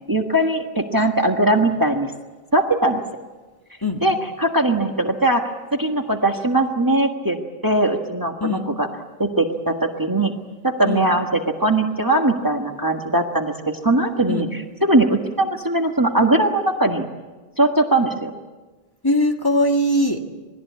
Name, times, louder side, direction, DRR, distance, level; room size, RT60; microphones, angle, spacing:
voice 1, 0.1-2.1 2.5-3.0 4.0-5.5 5.8-7.4 7.6-8.9 9.2-10.3 10.6-14.5 14.8-17.1 17.6-18.3, right 1 dB, 20° right, 3 dB, 1.6 m, -20 dB
voice 2, 19.0-20.2, left 1 dB, 20° left, 2 dB, 1.9 m, -20 dB
27.5 x 20.5 x 8.4 m, 1.3 s
omnidirectional pair, 1.1 m